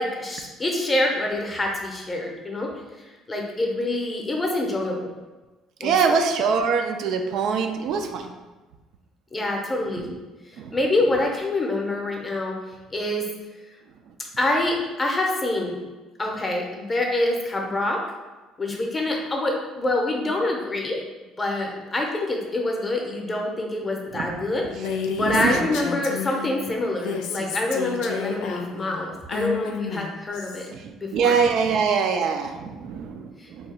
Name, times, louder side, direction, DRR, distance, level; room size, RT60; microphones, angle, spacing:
voice 1, 0.0-5.1 5.8-6.2 9.3-10.1 10.5-12.5 12.9-13.3 14.4-15.8 16.2-18.0 18.6-21.0 21.4-30.7 31.0-31.4 33.4-33.5, left 2 dB, 20° left, 0 dB, 0.6 m, -26 dB
voice 2, 5.8-8.3 10.6-10.8 24.1-24.5 25.2-25.7 30.7-33.7, right 5 dB, 65° right, 5 dB, 0.3 m, -24 dB
Female speech woman speaking, 24.7-26.5 26.9-30.7, left 6 dB, 85° left, 0.4 m, -31 dB
2.8 x 2.2 x 4.1 m, 1.2 s
cardioid pair, 130°, 0 cm